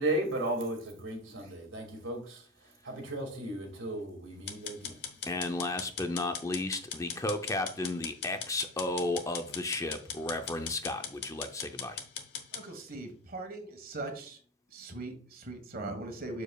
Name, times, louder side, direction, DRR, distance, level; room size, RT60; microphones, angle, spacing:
voice 1, 0.0-2.4 2.8-5.0, right 1 dB, 90° right, 2.1 m, -35 dB
sound 1, 4.5-12.6, left 7 dB, 60° left, 1.0 m, -40 dB
voice 2, 5.3-12.0, left 2 dB, 15° left, 0.5 m, -33 dB
voice 3, 12.5-14.4 14.7-16.4, right 2 dB, 50° right, 1.4 m, -40 dB
7.0 x 6.8 x 2.3 m
head